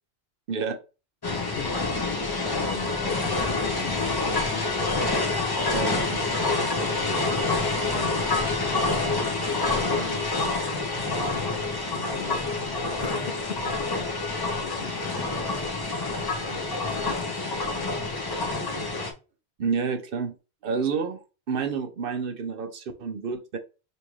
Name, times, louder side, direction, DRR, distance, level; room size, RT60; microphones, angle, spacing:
voice 1, 0.5-0.8 5.7-6.3 19.6-20.3 20.6-23.6, right 5 dB, 65° right, 0.8 m, -29 dB
voice 2, 1.2-2.2 2.5-5.0 6.6-8.3 9.5-10.3 11.1-12.6 13.0-14.2 14.6-15.7 16.4-18.0 18.3-18.7, left 5 dB, 65° left, 0.8 m, -40 dB
sound 1, 1.2-19.1, left 3 dB, 25° left, 0.6 m, -27 dB
5.3 x 2.6 x 3.0 m
omnidirectional pair, 1.1 m